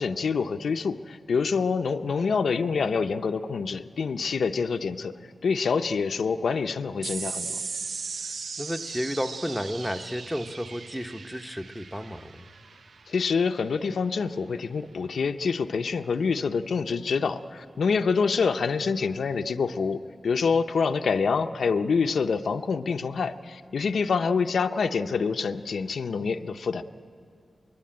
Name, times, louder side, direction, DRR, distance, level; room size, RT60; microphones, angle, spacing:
voice 1, 0.0-5.1 5.4-7.6 13.1-26.8, left 5 dB, 80° left, 7 dB, 0.7 m, -26 dB
sound 1, 7.0-13.8, right 5 dB, 65° right, 0.6 m, -38 dB
voice 2, 8.6-12.4, equal, ahead, 7 dB, 0.7 m, -32 dB
23.0 x 21.5 x 8.8 m, 2.3 s
wide cardioid pair, 155°, 0 cm